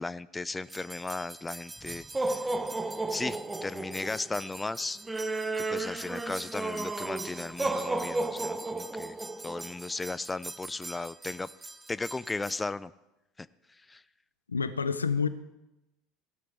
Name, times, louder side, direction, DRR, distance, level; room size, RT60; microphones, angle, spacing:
voice 1, 0.0-2.5 3.1-5.0 5.6-9.2 9.4-11.5 11.9-12.9 13.4-13.5 13.9-14.0, left 3 dB, 15° left, 0.4 m, -36 dB
sound 1, 0.7-12.6, right 2 dB, 15° right, 0.8 m, -35 dB
voice 2, 14.5-15.3, left 5 dB, 90° left, 0.5 m, -28 dB
17.0 x 12.5 x 3.5 m
hypercardioid pair, 70°, 0 cm